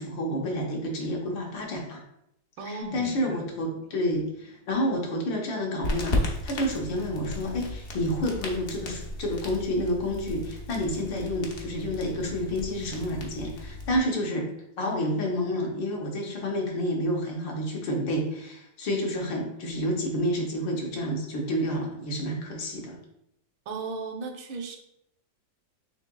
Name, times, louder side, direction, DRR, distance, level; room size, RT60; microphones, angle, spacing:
voice 1, 0.0-2.0 2.7-14.5 14.8-23.0, equal, 75° left, -1 dB, 1.6 m, -29 dB
voice 2, 2.6-3.5 23.7-24.8, right 4 dB, 80° right, 4 dB, 1.3 m, -36 dB
sound 1, 2.8-6.8 7.1-7.2, equal, 10° left, 0.5 m, -51 dB
sound 2, 5.8-14.0, left 1 dB, 60° left, 0.8 m, -35 dB
6.5 x 2.9 x 2.2 m, 0.78 s
omnidirectional pair, 2.1 m